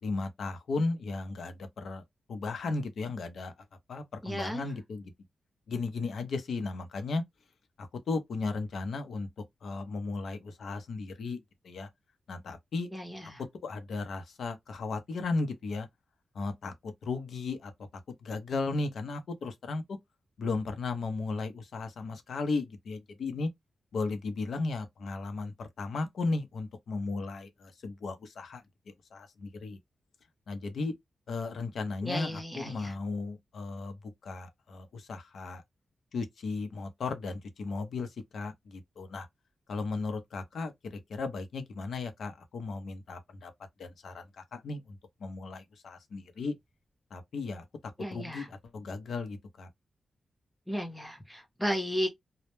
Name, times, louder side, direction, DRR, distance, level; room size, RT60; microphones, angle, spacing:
voice 1, 0.0-3.5 3.9-5.1 5.7-7.2 7.8-9.3 9.6-11.9 12.3-12.9 13.4-15.9 16.3-17.7 18.2-20.0 20.4-23.5 23.9-29.8 30.5-30.9 31.3-35.6 36.1-39.3 39.7-43.5 43.8-46.5 47.1-47.6 48.1-49.7, left 3 dB, 70° left, 0.5 m, -35 dB
voice 2, 4.2-4.6 12.9-13.4 32.0-32.9 48.0-48.5 50.7-52.1, equal, ahead, 0.6 m, -34 dB
2.0 x 2.0 x 3.0 m
wide cardioid pair, 170°, 0 cm